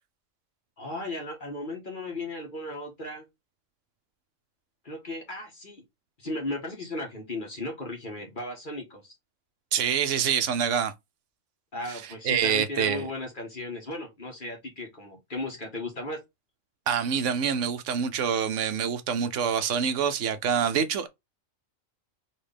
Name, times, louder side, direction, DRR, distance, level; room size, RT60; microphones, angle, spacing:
voice 1, 0.8-3.3 4.8-5.8 6.2-9.1 11.7-16.2, left 2 dB, 40° left, 1.7 m, -36 dB
voice 2, 9.7-10.9 11.9-13.1 16.9-21.1, right 7 dB, 65° right, 1.1 m, -26 dB
4.2 x 3.3 x 3.4 m
omnidirectional pair, 1.4 m